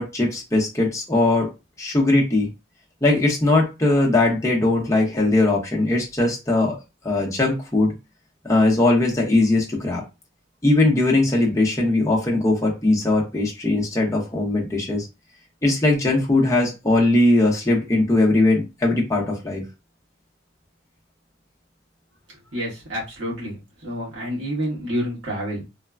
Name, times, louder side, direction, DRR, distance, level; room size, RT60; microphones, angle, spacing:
voice 1, 0.0-1.5 1.8-2.5 3.0-6.7 7.0-7.9 8.4-10.0 10.6-15.1 15.6-19.6, left 2 dB, 15° left, -3 dB, 0.7 m, -20 dB
voice 2, 22.5-25.6, equal, 75° right, -5 dB, 1.5 m, -28 dB
3.2 x 2.1 x 2.3 m, 0.26 s
head